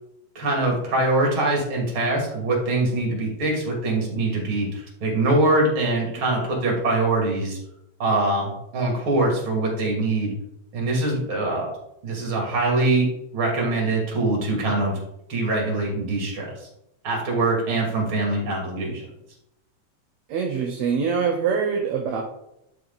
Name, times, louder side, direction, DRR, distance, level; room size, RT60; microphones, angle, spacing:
voice 1, 0.3-7.6 8.0-10.3 10.7-11.7 12.0-15.0 15.3-16.7 17.0-19.1, right 2 dB, 45° right, -1 dB, 3.1 m, -23 dB
voice 2, 20.3-22.2, right 6 dB, 70° right, 2 dB, 2.2 m, -24 dB
11.0 x 4.8 x 4.0 m, 0.82 s
omnidirectional pair, 3.5 m